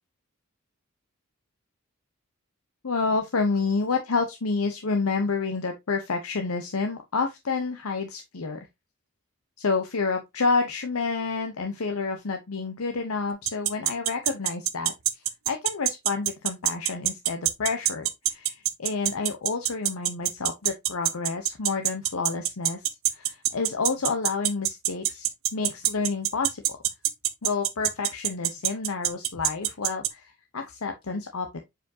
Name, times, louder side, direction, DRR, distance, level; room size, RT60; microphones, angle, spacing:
voice 1, 2.8-8.6 9.6-14.9 15.5-22.8 23.1-26.8 27.4-31.6, left 4 dB, 80° left, 0.8 m, -29 dB
sound 1, 13.5-30.1, right 14 dB, 70° right, 0.7 m, -24 dB
7.0 x 5.0 x 2.7 m
head